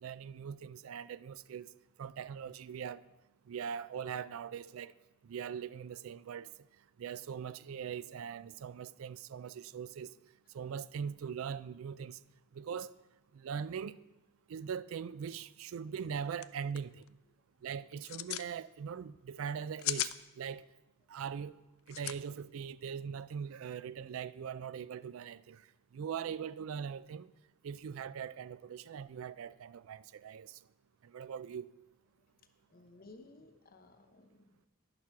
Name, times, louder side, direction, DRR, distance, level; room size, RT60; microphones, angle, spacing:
voice 1, 0.0-1.7 2.0-3.0 3.5-4.9 5.2-6.5 7.0-10.1 10.5-12.2 12.5-12.9 13.3-14.0 14.5-17.0 17.6-20.6 21.1-21.6 21.9-25.6 25.9-27.3 27.6-30.6 31.0-31.7, right 7 dB, 90° right, 0.4 m, -41 dB
sound 1, 16.0-16.1 16.3-16.5 16.8-17.1 17.9-18.5 19.5-20.2 21.9-22.2, left 14 dB, 90° left, 0.4 m, -36 dB
voice 2, 32.7-34.7, left 2 dB, 45° left, 0.9 m, -57 dB
11.0 x 6.8 x 5.8 m
head